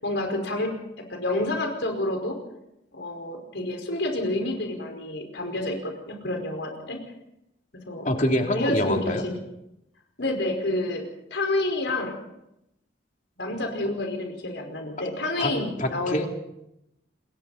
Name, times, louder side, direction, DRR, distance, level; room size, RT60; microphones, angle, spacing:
voice 1, 0.0-2.4 2.9-7.0 7.9-8.1 8.5-9.4 10.2-11.0 11.3-12.2 13.4-16.3, left 2 dB, 80° left, 3 dB, 5.2 m, -29 dB
voice 2, 8.0-9.2 15.4-15.5 15.8-16.3, left 1 dB, 45° left, 2 dB, 3.3 m, -25 dB
28.5 x 22.0 x 4.3 m, 0.83 s
head